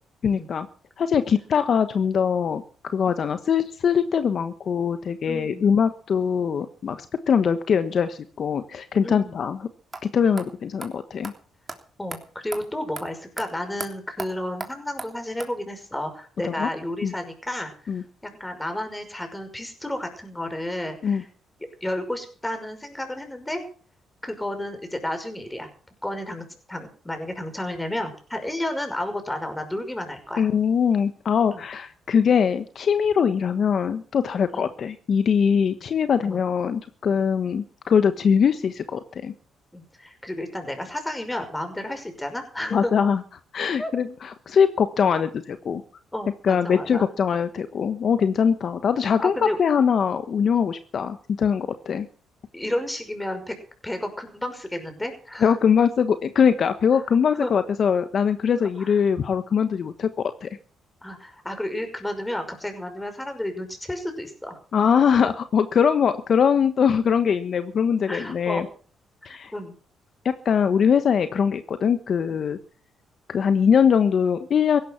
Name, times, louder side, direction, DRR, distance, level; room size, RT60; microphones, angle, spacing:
voice 1, 0.2-0.7 1.0-9.6 10.1-11.3 16.4-16.7 17.0-17.1 17.9-18.0 21.0-21.2 30.4-39.3 42.7-43.2 43.5-45.8 46.4-49.3 49.6-52.1 55.4-60.1 60.4-60.5 64.7-68.7 69.2-69.5 70.2-72.6 73.3-74.8, left 7 dB, 55° left, 10 dB, 1.2 m, -22 dB
voice 2, 5.3-5.7 9.0-9.4 10.2-10.5 12.0-17.9 18.2-21.3 21.8-23.6 24.2-25.7 26.0-30.5 31.5-31.6 34.5-34.7 36.2-36.4 39.7-42.9 43.8-43.9 46.1-47.1 49.2-49.6 52.5-53.5 53.8-55.6 56.9-57.0 57.3-57.5 58.6-59.0 61.0-64.6 65.2-65.3 68.0-68.6 69.2-69.7, left 1 dB, 10° left, 7 dB, 5.7 m, -32 dB
sound 1, 9.9-10.0 10.4-10.5 10.8-10.9 11.2-11.3 11.7-11.8 12.1-12.2 12.5-12.6 13.0-13.1 13.4-13.5 13.8-13.9 14.2-14.3 14.6-14.7 15.0-15.1 15.4-15.5, right 3 dB, 25° right, 3.2 m, -34 dB
16.5 x 12.0 x 5.9 m, 0.42 s
cardioid pair, 90°, 0 cm